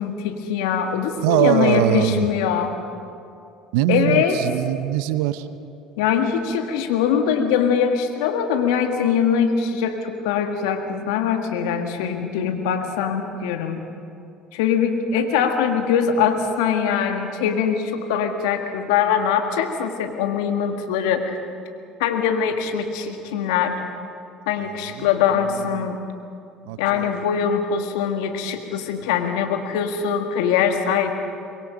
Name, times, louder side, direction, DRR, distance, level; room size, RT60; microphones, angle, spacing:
voice 1, 0.0-2.8 3.9-4.4 6.0-13.8 14.5-21.4 22.0-23.7 24.5-26.0 26.8-31.1, left 7 dB, 75° left, 5 dB, 1.8 m, -22 dB
voice 2, 1.2-2.3 3.7-5.5 24.7-25.1 25.3-25.9 26.7-27.2, right 13 dB, 75° right, 12 dB, 0.8 m, -22 dB
24.0 x 22.0 x 5.2 m, 2.5 s
hypercardioid pair, 65°, 3 cm